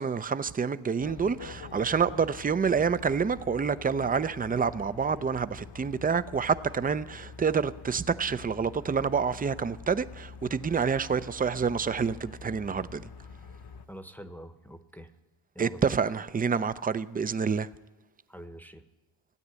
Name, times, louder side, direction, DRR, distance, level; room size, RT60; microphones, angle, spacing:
voice 1, 0.0-13.0 15.6-17.7, right 6 dB, 20° right, 0.5 m, -28 dB
sound 1, 1.0-13.9, left 5 dB, 50° left, 1.2 m, -46 dB
voice 2, 13.9-15.1 15.5-15.9 18.3-18.8, equal, 5° left, 1.0 m, -45 dB
16.5 x 9.5 x 8.2 m
cardioid pair, 80°, 47 cm